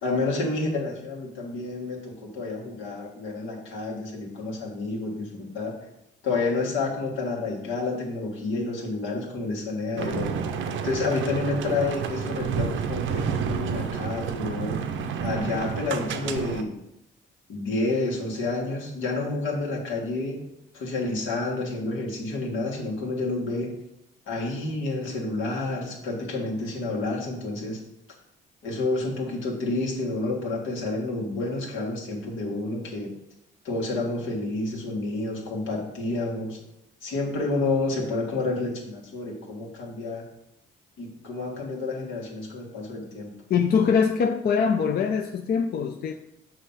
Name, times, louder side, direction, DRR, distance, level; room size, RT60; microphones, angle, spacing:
voice 1, 0.0-5.7 6.2-10.4 10.8-14.8 15.2-16.7 17.5-20.4 20.7-23.7 24.3-27.8 28.6-33.1 33.6-36.6 37.0-40.3 41.0-43.3, left 3 dB, 85° left, -2 dB, 1.7 m, -29 dB
sound 1, 10.0-16.6, right 7 dB, 80° right, 0.6 m, -30 dB
voice 2, 43.5-46.1, left 6 dB, 50° left, 5 dB, 0.5 m, -23 dB
6.4 x 2.8 x 5.5 m, 0.84 s
cardioid pair, 90°, 20 cm